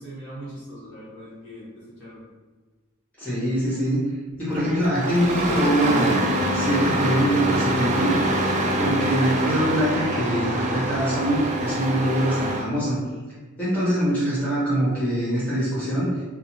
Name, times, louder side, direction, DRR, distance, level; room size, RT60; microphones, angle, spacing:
voice 1, 0.0-2.2, right 1 dB, 60° left, -8 dB, 1.1 m, -40 dB
voice 2, 3.2-4.0 4.4-6.2 6.5-8.2 8.7-13.0 13.6-16.2, equal, 5° left, -11 dB, 1.1 m, -23 dB
Engine starting, 4.5-12.7, right 1 dB, 35° right, 0.3 m, -25 dB
2.6 x 2.2 x 2.9 m, 1.3 s
head